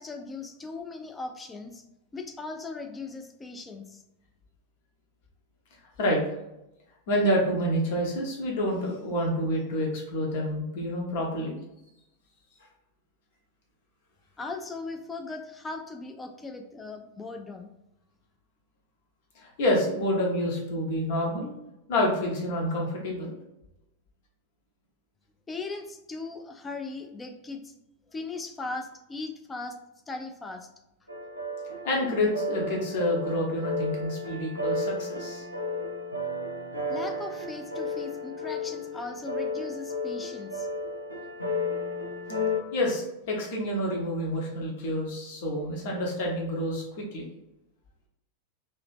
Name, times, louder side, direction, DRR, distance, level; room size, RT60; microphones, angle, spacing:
voice 1, 0.0-1.8 2.1-4.0 14.4-17.7 25.5-27.7 28.1-29.8 30.1-30.7 36.9-40.7, left 3 dB, 15° left, 5 dB, 0.5 m, -38 dB
voice 2, 7.1-11.6 19.3-21.5 21.9-23.3 31.8-35.4 42.7-47.2, left 1 dB, 50° left, -1 dB, 1.0 m, -28 dB
sound 1, 31.1-42.6, left 2 dB, 90° right, 0.6 m, -33 dB
2.9 x 2.9 x 3.3 m, 0.89 s
figure-of-eight pair, 90°, 0 cm